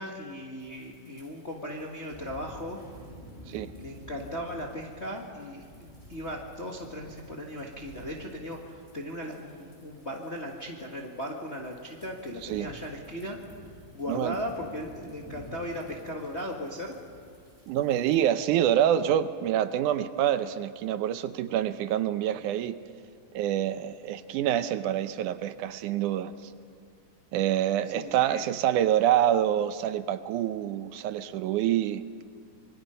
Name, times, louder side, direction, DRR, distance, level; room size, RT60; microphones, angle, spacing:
voice 1, 0.0-2.8 3.8-13.4 13.9-16.9 21.5-21.6 27.9-28.4, equal, 35° left, 0 dB, 1.1 m, -37 dB
sound 1, 0.6-18.3, equal, 10° left, 6.1 m, -51 dB
voice 2, 17.7-22.8 23.3-26.5 27.3-32.0, right 11 dB, 80° right, 12 dB, 2.1 m, -26 dB
26.5 x 23.0 x 5.6 m, 2.1 s
omnidirectional pair, 3.7 m